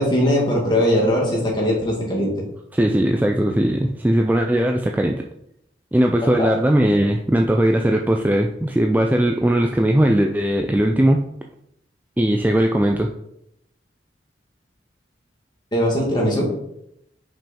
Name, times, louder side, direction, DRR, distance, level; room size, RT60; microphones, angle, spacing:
voice 1, 0.0-2.4 6.4-6.5 15.7-16.5, equal, 25° left, -3 dB, 2.1 m, -20 dB
voice 2, 2.7-5.3 5.9-11.3 12.2-13.1, right 1 dB, 10° right, 3 dB, 0.3 m, -19 dB
5.9 x 5.5 x 4.3 m, 0.77 s
head